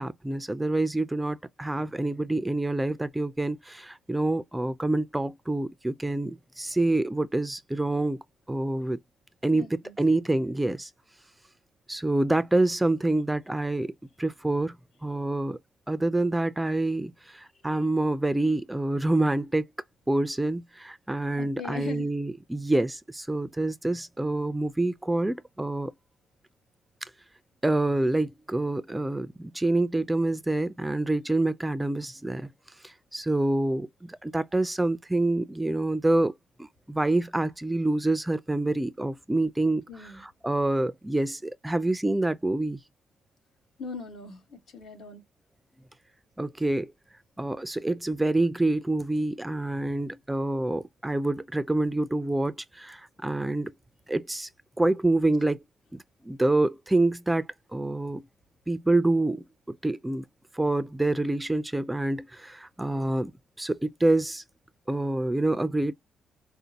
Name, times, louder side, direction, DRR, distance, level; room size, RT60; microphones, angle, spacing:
voice 1, 0.0-9.0 9.4-9.7 10.0-10.9 11.9-14.8 15.0-15.6 15.9-19.6 20.1-25.9 27.0-27.1 27.6-32.5 32.8-36.3 36.6-42.8 46.4-46.9 47.4-53.7 54.1-54.5 54.8-55.6 55.9-58.2 58.7-60.3 60.5-63.3 63.6-64.4 64.9-65.9, right 2 dB, 10° right, 0.3 m, -27 dB
voice 2, 9.5-9.9 21.4-22.1 39.9-40.2 43.8-45.2, left 4 dB, 60° left, 1.5 m, -40 dB
4.9 x 2.1 x 2.8 m
cardioid pair, 90°, 0 cm